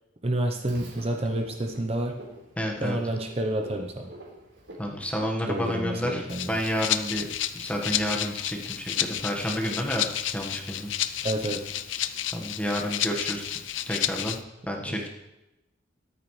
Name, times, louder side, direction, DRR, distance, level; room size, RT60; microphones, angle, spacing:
voice 1, 0.2-2.2 2.8-4.1 5.4-6.6 11.2-11.7 14.9-15.0, right 1 dB, 30° right, 3 dB, 0.8 m, -29 dB
Frog, 0.7-5.9, right 1 dB, 75° right, 4.1 m, -47 dB
voice 2, 2.6-3.0 4.8-7.3 7.5-10.1 10.3-10.9 12.3-13.5 13.8-14.4 14.7-15.1, equal, 5° left, 0 dB, 1.4 m, -30 dB
Rattle (instrument), 6.3-14.4, left 11 dB, 75° left, 0.6 m, -31 dB
22.5 x 9.1 x 3.2 m, 0.97 s
head